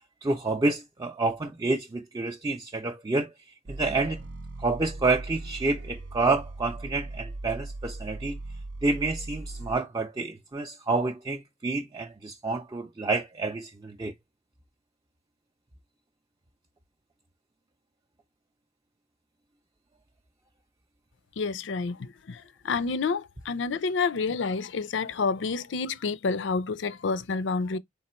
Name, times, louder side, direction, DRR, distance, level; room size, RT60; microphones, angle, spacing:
voice 1, 0.2-3.3 3.7-4.2 4.6-8.4 8.8-14.1, right 3 dB, 20° right, 0.5 m, -28 dB
sound 1, 3.7-9.8, right 2 dB, 85° right, 0.5 m, -39 dB
voice 2, 21.4-27.8, left 4 dB, 80° left, 0.5 m, -29 dB
4.0 x 2.4 x 4.2 m
head